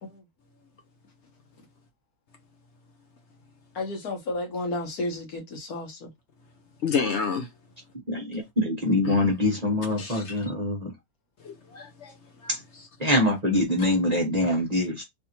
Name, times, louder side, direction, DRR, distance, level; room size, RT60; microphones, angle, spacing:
voice 1, 3.7-6.1, left 2 dB, 80° left, 1.6 m, -32 dB
voice 2, 6.8-7.5 9.0-9.2 10.0-10.4 11.4-12.1 12.4-12.6, left 6 dB, 55° left, 1.0 m, -29 dB
voice 3, 8.1-10.9 12.5-12.6 13.0-15.0, left 1 dB, 30° right, 0.9 m, -24 dB
3.4 x 2.5 x 2.9 m
omnidirectional pair, 1.5 m